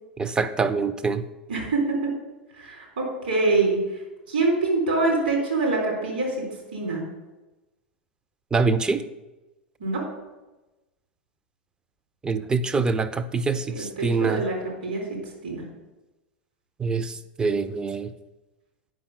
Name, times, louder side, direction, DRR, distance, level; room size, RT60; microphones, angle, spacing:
voice 1, 0.2-1.2 8.5-9.0 12.2-14.4 16.8-18.1, right 4 dB, 15° right, 10 dB, 0.5 m, -25 dB
voice 2, 1.5-2.1 2.5-3.8 4.3-7.0 9.8-10.0 13.7-15.0 15.4-15.6, right 3 dB, 70° right, -2 dB, 3.6 m, -25 dB
9.2 x 5.6 x 6.6 m, 1.1 s
figure-of-eight pair, 90°, 6 cm